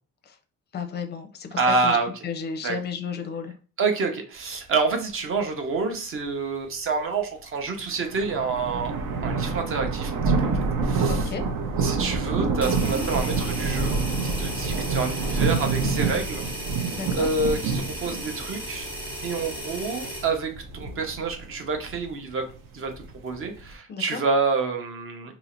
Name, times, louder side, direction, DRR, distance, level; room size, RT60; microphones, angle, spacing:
voice 1, 0.7-2.0 2.2-3.5 11.1-11.4 16.9-17.3 23.9-24.2, left 6 dB, 30° left, 7 dB, 0.5 m, -33 dB
voice 2, 1.5-2.1 2.6-2.8 3.8-8.9 9.2-11.3 11.8-16.5 16.8-18.9 19.2-22.5 22.7-22.9 23.2-25.3, right 4 dB, 40° right, 5 dB, 0.8 m, -28 dB
sound 1, 7.8-23.7, right 4 dB, 70° right, 0.9 m, -28 dB
sound 2, 12.6-20.3, equal, 5° right, 1.0 m, -35 dB
2.8 x 2.7 x 4.3 m, 0.37 s
cardioid pair, 180°, 33 cm